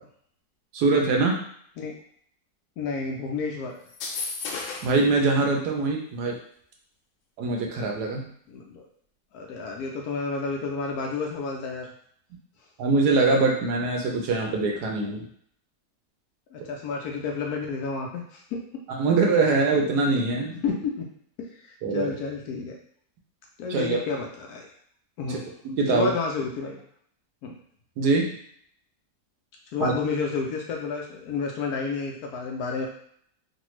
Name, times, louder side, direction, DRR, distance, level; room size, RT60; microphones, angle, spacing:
voice 1, 0.7-1.4 4.8-6.4 7.4-8.3 12.8-15.2 18.9-20.6 21.8-22.1 23.7-24.0 25.3-25.4 25.6-26.1 28.0-28.3 29.8-29.9, right 3 dB, 70° right, 0 dB, 1.1 m, -23 dB
voice 2, 2.8-3.8 8.5-8.9 9.3-11.9 16.5-18.6 20.6-21.1 21.4-22.8 23.6-24.7 25.2-25.5 25.9-26.8 27.4-27.5 29.7-32.9, left 4 dB, 70° left, 0 dB, 0.9 m, -30 dB
sound 1, 3.9-5.0, left 4 dB, 85° left, 1.3 m, -33 dB
3.2 x 2.2 x 3.0 m, 0.64 s
omnidirectional pair, 1.9 m